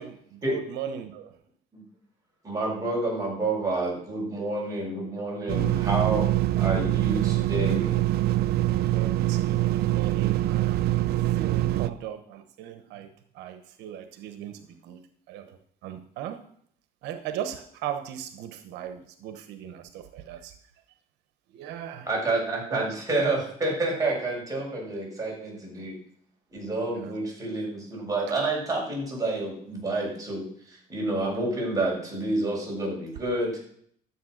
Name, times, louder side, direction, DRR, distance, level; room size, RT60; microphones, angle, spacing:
voice 1, 0.0-1.4 8.9-10.9 11.3-13.1 13.3-16.4 17.0-20.5 21.5-22.1 22.7-22.9 26.9-27.1, right 9 dB, 85° right, 9 dB, 1.1 m, -38 dB
voice 2, 2.4-6.3 6.6-8.0 22.1-26.0 26.5-33.6, right 2 dB, 20° right, -3 dB, 7.0 m, -29 dB
sound 1, 5.5-11.9, right 15 dB, 70° right, 0.6 m, -24 dB
12.5 x 8.1 x 6.5 m, 0.65 s
cardioid pair, 110°, 17 cm